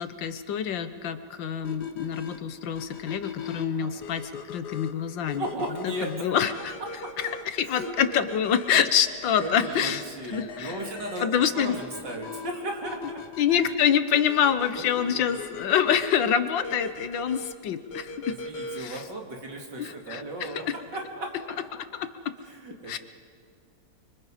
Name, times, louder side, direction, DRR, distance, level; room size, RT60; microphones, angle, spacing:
voice 1, 0.0-5.4 6.0-6.7 7.5-10.0 10.3-10.8 11.2-11.8 13.4-18.4 18.8-19.0 19.8-20.7 22.0-22.1 22.9-23.0, left 8 dB, 90° left, 10 dB, 1.7 m, -26 dB
sound 1, 1.6-19.0, left 4 dB, 65° left, 1.9 m, -41 dB
voice 2, 5.4-6.7 7.0-7.1 7.6-7.9 9.4-11.3 11.5-13.2 14.7-15.4 18.3-20.6 20.9-21.5 22.4-23.0, right 1 dB, 70° right, 0 dB, 3.5 m, -36 dB
29.0 x 24.5 x 5.0 m, 2.2 s
omnidirectional pair, 2.0 m